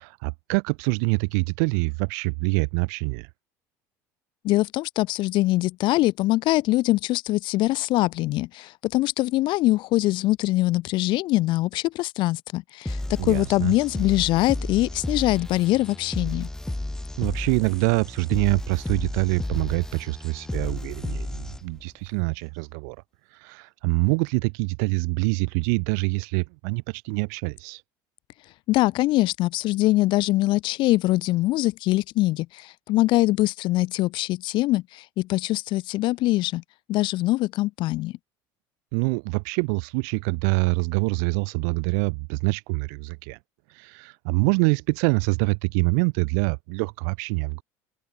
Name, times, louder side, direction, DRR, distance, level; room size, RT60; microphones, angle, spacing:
voice 1, 0.0-3.3 13.2-13.7 17.2-23.0 23.4-27.8 38.9-43.4 43.7-47.6, right 39 dB, 80° right, 5.2 m, -25 dB
voice 2, 4.4-16.5 28.7-36.6 36.9-38.1, left 18 dB, 60° left, 2.3 m, -23 dB
sound 1, 12.8-21.8, left 1 dB, 5° left, 4.1 m, -33 dB
open air
supercardioid pair, 115°, 9 cm